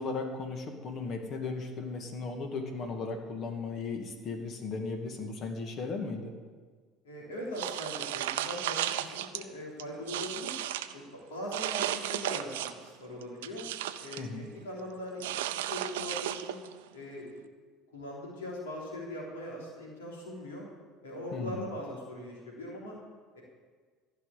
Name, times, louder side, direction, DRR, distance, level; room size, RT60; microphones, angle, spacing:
voice 1, 0.0-6.3 14.2-14.5 21.3-21.7, left 4 dB, 50° left, 4 dB, 2.1 m, -36 dB
voice 2, 7.0-10.5 10.9-11.0 11.3-13.7 14.0-16.6 16.9-17.3 17.9-20.7 21.0-23.0 23.3-23.4, left 1 dB, 85° left, -3 dB, 3.3 m, -41 dB
sound 1, 7.6-9.4 9.8-10.9 11.5-12.9 13.2-14.3 15.2-16.7, right 12 dB, 80° right, 0.5 m, -34 dB
15.0 x 6.0 x 8.5 m, 1.5 s
hypercardioid pair, 70°, 0 cm